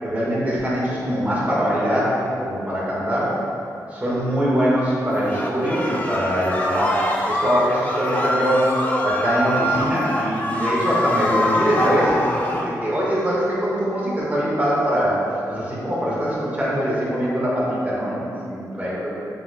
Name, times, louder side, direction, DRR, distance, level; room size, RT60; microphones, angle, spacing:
voice 1, 0.0-3.4 3.9-15.2 15.5-19.1, equal, 20° right, -8 dB, 1.5 m, -22 dB
sound 1, 5.3-12.7, left 1 dB, 20° left, 0.6 m, -24 dB
6.9 x 3.2 x 2.2 m, 2.7 s
cardioid pair, 75°, 7 cm